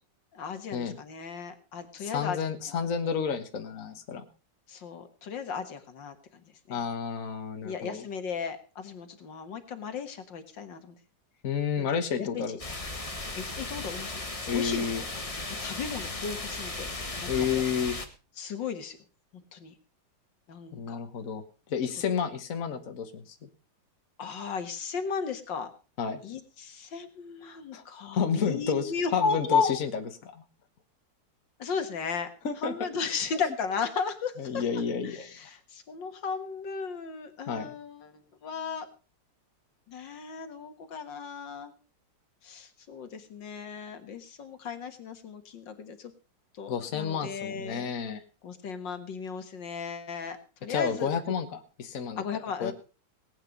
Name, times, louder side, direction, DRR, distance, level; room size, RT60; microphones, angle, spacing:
voice 1, 0.3-2.4 2.7-2.9 4.7-6.8 7.6-10.9 11.8-11.9 12.2-12.4 13.3-14.2 14.5-15.1 15.6-16.9 17.2-17.6 18.4-19.0 19.5-19.7 20.5-21.0 24.2-25.7 26.2-29.7 31.6-32.3 32.6-34.6 35.0-38.9 39.9-41.7 42.4-46.1 46.5-47.9 48.4-51.1 52.2-52.7, left 5 dB, 75° left, 8 dB, 2.3 m, -35 dB
voice 2, 2.0-4.2 6.7-8.0 11.4-12.6 14.5-15.0 17.3-17.9 20.7-21.4 21.7-23.5 26.0-26.2 27.7-27.8 28.1-30.4 32.4-32.7 33.2-33.3 34.4-35.3 37.5-37.7 46.7-48.2 50.7-52.2 52.6-52.7, left 6 dB, 45° left, 6 dB, 1.6 m, -31 dB
sound 1, 12.6-18.0, left 2 dB, 20° left, 1.5 m, -36 dB
19.0 x 8.9 x 5.3 m, 0.35 s
omnidirectional pair, 2.0 m